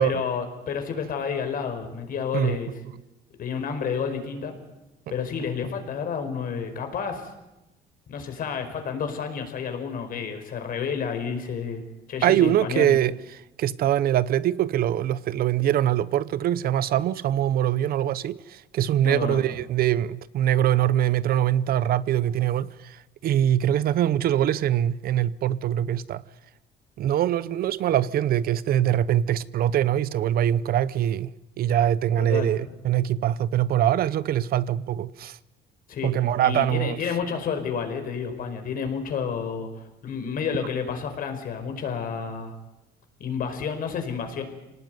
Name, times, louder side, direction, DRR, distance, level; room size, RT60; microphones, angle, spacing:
voice 1, 0.0-2.7 3.4-4.5 5.1-7.3 8.1-11.8 12.1-13.0 19.0-19.4 32.2-32.5 35.9-36.1 36.4-42.5 43.2-44.4, left 6 dB, 55° left, 4.9 m, -30 dB
voice 2, 12.2-13.1 13.6-26.2 27.0-31.3 31.6-35.4 36.0-37.0, right 11 dB, 60° right, 0.8 m, -23 dB
25.0 x 19.0 x 9.4 m
cardioid pair, 110°, 17 cm